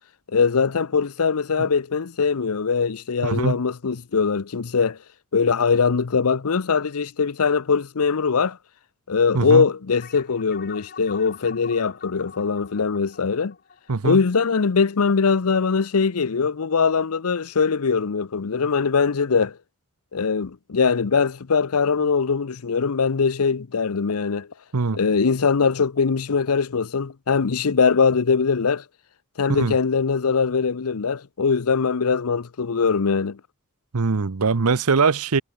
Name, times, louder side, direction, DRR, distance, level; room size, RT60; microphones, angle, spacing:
voice 1, 0.3-5.0 5.3-8.6 9.1-13.5 14.0-19.6 20.1-24.5 24.9-28.8 29.4-33.4, left 5 dB, 80° left, 0.7 m, -21 dB
voice 2, 3.2-3.6 9.3-9.7 13.9-14.2 24.7-25.0 29.5-29.8 33.9-35.4, right 4 dB, 85° right, 0.8 m, -21 dB
sound 1, 10.0-14.9, left 7 dB, 45° left, 3.7 m, -44 dB
head